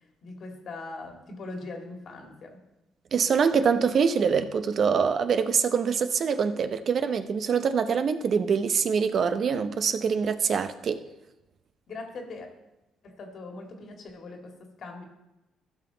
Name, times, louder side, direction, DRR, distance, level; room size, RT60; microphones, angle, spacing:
voice 1, 0.2-2.6 11.9-12.5 13.0-15.0, left 3 dB, 60° left, 2.0 m, -41 dB
voice 2, 3.1-11.0, right 6 dB, 55° right, 0.7 m, -24 dB
15.0 x 5.9 x 3.9 m
supercardioid pair, 70°, 0 cm